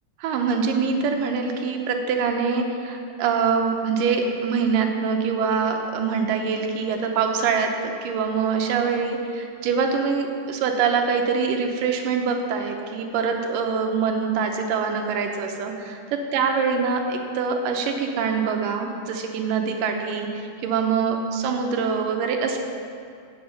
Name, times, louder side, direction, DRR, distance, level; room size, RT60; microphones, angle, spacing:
voice 1, 0.2-22.6, right 5 dB, 85° right, 3 dB, 2.4 m, -24 dB
8.7 x 7.3 x 6.7 m, 2.4 s
omnidirectional pair, 3.9 m